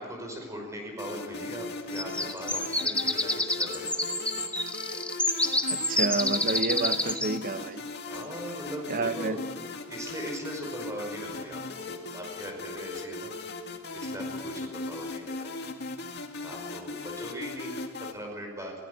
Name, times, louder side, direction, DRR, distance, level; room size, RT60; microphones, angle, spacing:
voice 1, 0.0-4.3 8.1-9.4 9.9-13.3 13.9-15.5 16.4-18.7, equal, 15° right, 5.6 m, -39 dB
sound 1, 1.0-18.1, left 3 dB, 55° left, 2.1 m, -38 dB
sound 2, 2.0-7.3, left 1 dB, 5° left, 1.6 m, -28 dB
voice 2, 5.7-7.8 8.9-9.4, right 3 dB, 40° right, 1.0 m, -30 dB
23.0 x 17.0 x 8.1 m
head